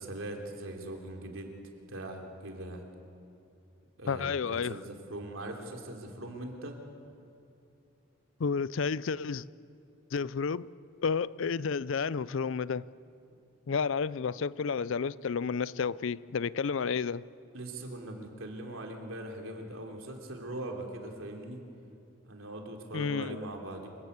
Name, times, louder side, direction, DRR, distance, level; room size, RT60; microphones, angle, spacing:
voice 1, 0.0-1.5 1.9-2.8 4.0-6.7 17.5-21.6 22.3-23.9, right 1 dB, 70° right, 3.2 m, -41 dB
voice 2, 4.1-4.8 8.4-9.4 10.1-10.7 11.0-12.9 13.7-17.2 22.9-23.4, left 5 dB, 65° left, 0.4 m, -31 dB
27.0 x 16.0 x 8.2 m
head